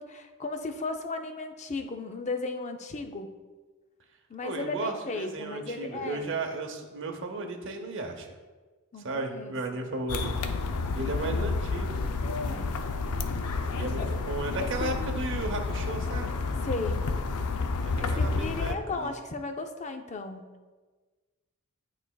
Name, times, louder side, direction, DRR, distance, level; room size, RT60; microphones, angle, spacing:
voice 1, 0.0-3.3 4.3-6.3 8.9-9.8 10.9-11.5 12.4-12.7 14.0-14.1 14.6-14.9 16.6-17.0 18.0-20.4, left 3 dB, 30° left, 6 dB, 0.5 m, -36 dB
voice 2, 4.4-8.3 9.0-10.3 10.9-12.0 13.7-16.4 17.8-19.1, right 2 dB, 55° right, 4 dB, 0.7 m, -34 dB
sound 1, 10.1-18.7, left 3 dB, 85° left, 0.5 m, -30 dB
11.0 x 4.0 x 2.3 m, 1.3 s
head